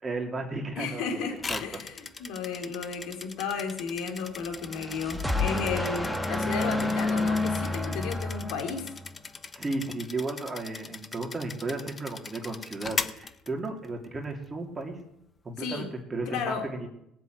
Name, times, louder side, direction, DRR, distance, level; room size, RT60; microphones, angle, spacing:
voice 1, 0.0-1.8 9.5-15.0 15.4-16.9, right 2 dB, 25° right, 2 dB, 2.8 m, -34 dB
voice 2, 0.8-8.9 15.6-15.9 16.3-16.7, left 5 dB, 75° left, 4 dB, 3.7 m, -34 dB
sound 1, 1.4-14.1, left 4 dB, 25° left, 1.0 m, -40 dB
sound 2, 4.5-9.1, left 2 dB, 5° left, 1.6 m, -29 dB
19.0 x 7.6 x 9.3 m, 0.79 s
supercardioid pair, 100°, 0 cm